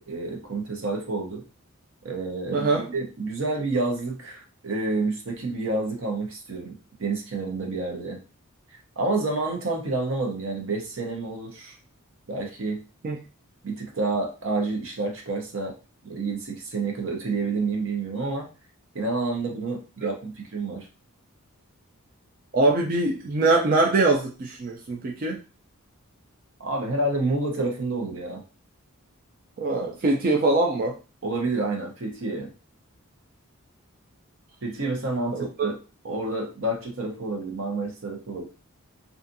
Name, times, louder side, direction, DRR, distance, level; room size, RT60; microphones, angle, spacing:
voice 1, 0.1-1.4 2.0-8.2 9.0-11.8 12.3-12.8 13.6-15.7 16.0-18.5 18.9-20.9 26.6-28.4 31.2-32.5 34.6-35.8 36.0-38.5, right 3 dB, 60° right, 2 dB, 0.7 m, -29 dB
voice 2, 2.5-2.9 13.0-13.2 20.0-20.2 22.5-25.4 29.6-30.9 35.3-35.8, right 2 dB, 40° right, 1 dB, 0.4 m, -23 dB
2.6 x 2.4 x 2.5 m, 0.33 s
head